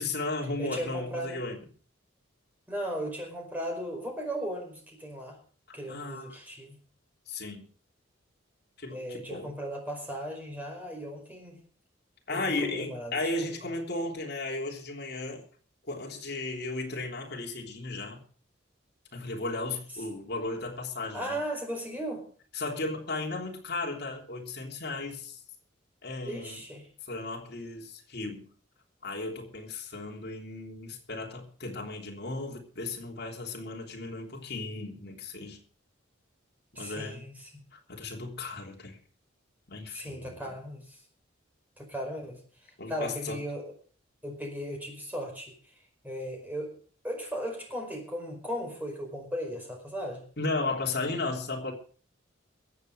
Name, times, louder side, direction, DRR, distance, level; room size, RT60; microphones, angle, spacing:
voice 1, 0.0-1.6 5.9-6.4 7.3-7.6 8.8-9.5 12.3-15.4 15.8-18.2 19.1-21.4 22.5-25.4 26.0-26.6 27.1-28.5 29.0-35.6 36.7-37.3 37.7-39.0 39.7-40.5 42.8-43.4 50.4-51.7, left 2 dB, 55° left, 0 dB, 3.3 m, -35 dB
voice 2, 0.6-1.4 2.7-5.4 5.7-6.8 8.9-11.6 12.3-13.3 13.6-13.7 21.1-22.3 26.2-26.9 36.7-37.6 39.9-41.0 41.8-43.7 44.2-45.5 46.0-46.7 47.0-50.2, equal, 10° right, 1 dB, 4.9 m, -37 dB
23.0 x 8.4 x 5.0 m, 0.43 s
head